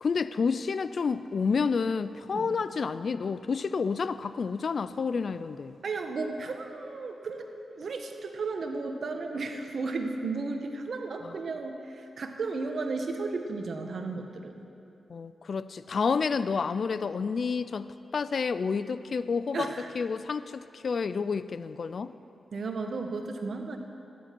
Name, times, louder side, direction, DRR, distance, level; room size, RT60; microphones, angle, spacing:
voice 1, 0.0-5.7 11.2-11.3 15.1-19.7 19.9-22.1, left 5 dB, 65° left, 14 dB, 0.3 m, -29 dB
voice 2, 5.8-7.5 7.7-14.6 19.5-19.9 22.5-23.8, right 3 dB, 65° right, 5 dB, 1.0 m, -34 dB
14.0 x 10.0 x 4.5 m, 2.7 s
cardioid pair, 50°, 0 cm